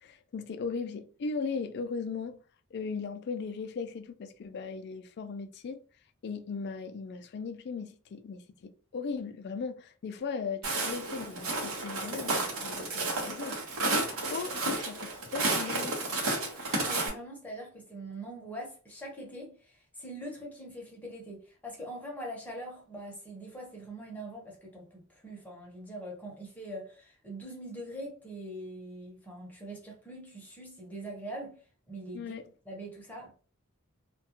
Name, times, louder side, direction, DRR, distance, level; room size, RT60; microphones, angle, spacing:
voice 1, 0.0-2.4 2.7-5.8 6.2-13.6 14.0-15.9 32.1-32.4, left 5 dB, 50° left, 0.3 m, -38 dB
Walk footsteps, 10.6-17.1, right 2 dB, 80° right, 0.9 m, -32 dB
voice 2, 16.7-31.6 31.9-32.3 32.6-33.3, right 1 dB, 10° left, 0.8 m, -43 dB
2.3 x 2.2 x 2.8 m
head